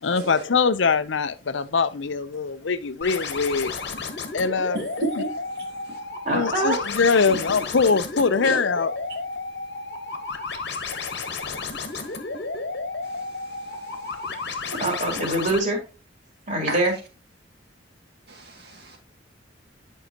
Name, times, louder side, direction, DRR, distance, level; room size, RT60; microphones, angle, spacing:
voice 1, 0.0-3.7 4.3-4.9 5.2-5.3 6.3-8.9, left 5 dB, 80° left, 0.6 m, -22 dB
sound 1, 3.0-15.6, left 4 dB, 60° left, 1.3 m, -32 dB
voice 2, 4.7-5.3 8.4-8.6 16.7-16.8 18.3-19.0, right 3 dB, 55° right, 2.3 m, -30 dB
voice 3, 6.2-6.8 7.3-7.4 14.8-15.8 16.5-17.0, right 1 dB, 40° right, 2.8 m, -24 dB
10.5 x 5.6 x 2.9 m
head